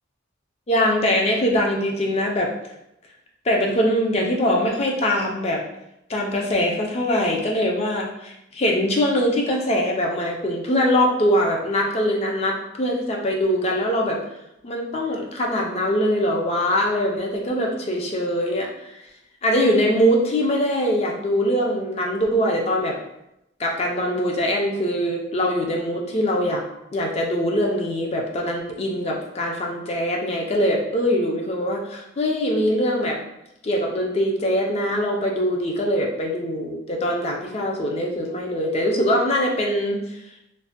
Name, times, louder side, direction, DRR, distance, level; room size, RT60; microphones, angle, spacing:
voice 1, 0.7-2.5 3.4-5.6 6.1-14.2 14.6-19.0 19.4-23.0 23.6-26.6 26.9-33.2 33.6-40.2, equal, 30° left, 0 dB, 0.4 m, -22 dB
3.1 x 2.1 x 2.8 m, 0.86 s
head